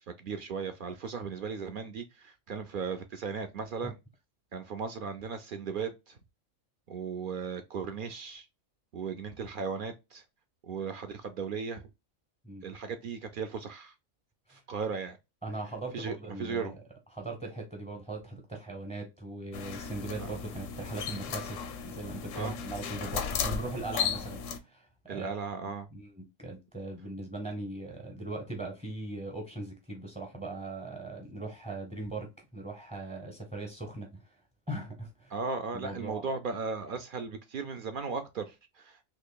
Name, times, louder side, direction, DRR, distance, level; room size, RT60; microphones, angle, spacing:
voice 1, 0.2-4.0 4.5-6.2 6.9-8.4 8.9-10.2 10.7-11.8 12.6-13.9 14.5-15.2 15.9-16.7 22.4-22.6 25.1-25.9 35.3-39.0, right 5 dB, 70° right, 0.5 m, -36 dB
voice 2, 15.4-16.8 17.1-21.6 21.8-25.4 25.9-34.4 34.7-35.4 35.7-36.3, right 2 dB, 10° right, 0.6 m, -39 dB
sound 1, 19.5-24.6, left 7 dB, 75° left, 0.9 m, -35 dB
4.3 x 2.9 x 2.2 m
omnidirectional pair, 1.4 m